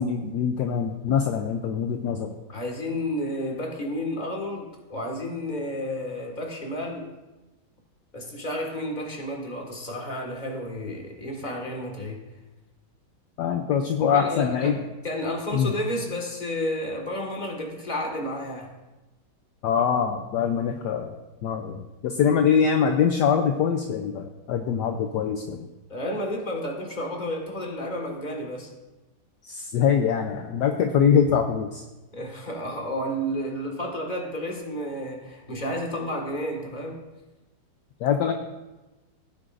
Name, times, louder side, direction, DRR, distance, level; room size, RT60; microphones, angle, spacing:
voice 1, 0.0-2.3 13.4-14.8 15.5-15.7 19.6-21.1 21.4-25.7 29.4-31.8 38.0-38.3, left 7 dB, 70° left, 4 dB, 1.1 m, -23 dB
voice 2, 2.5-7.1 8.1-12.2 14.0-14.8 15.0-18.7 25.9-28.7 32.1-37.0, equal, 25° left, 1 dB, 1.8 m, -31 dB
16.5 x 9.9 x 2.6 m, 1.1 s
omnidirectional pair, 2.2 m